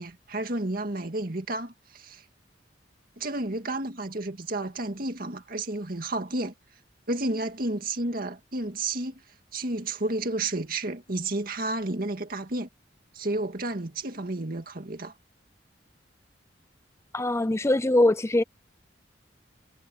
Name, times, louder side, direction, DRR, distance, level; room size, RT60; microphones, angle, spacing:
voice 1, 0.0-2.2 3.2-6.5 7.1-9.2 9.5-12.7 13.1-15.1, right 2 dB, 50° right, 2.1 m, -31 dB
voice 2, 17.1-18.4, left 1 dB, 15° left, 0.5 m, -22 dB
head